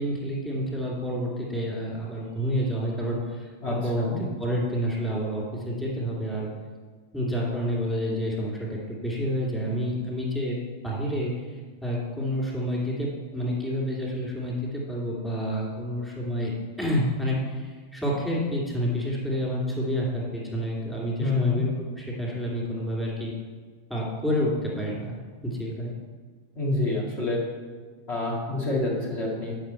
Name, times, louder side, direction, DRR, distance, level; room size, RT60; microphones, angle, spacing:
voice 1, 0.0-4.1 4.4-6.5 7.1-16.5 16.8-23.3 23.9-25.2 25.4-25.9, equal, 5° left, -5 dB, 2.6 m, -29 dB
voice 2, 3.6-4.2 21.2-21.6 26.5-27.4 28.1-29.5, left 2 dB, 50° left, -4 dB, 2.2 m, -27 dB
9.4 x 5.8 x 4.4 m, 1.5 s
figure-of-eight pair, 90°, 0 cm